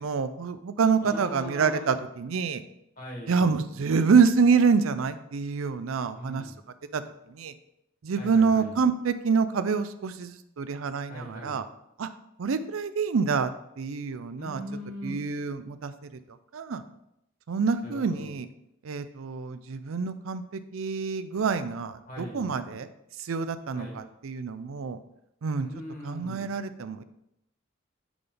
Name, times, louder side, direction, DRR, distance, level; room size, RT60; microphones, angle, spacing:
voice 1, 0.0-2.6 3.3-6.4 6.9-7.0 7.3-7.5 8.0-11.6 12.0-12.1 12.4-13.5 13.8-14.6 15.0-15.9 16.5-16.8 17.5-18.5 18.8-22.9 23.2-25.0 25.4-25.7 26.0-27.0, right 5 dB, 85° right, 12 dB, 0.5 m, -26 dB
voice 2, 1.0-2.0 3.0-3.6 6.1-6.5 8.2-8.7 11.1-11.6 14.4-15.2 17.8-18.3 22.1-22.5 23.7-24.0 25.6-26.5, equal, 45° left, -1 dB, 1.8 m, -40 dB
9.7 x 3.4 x 3.8 m, 0.80 s
head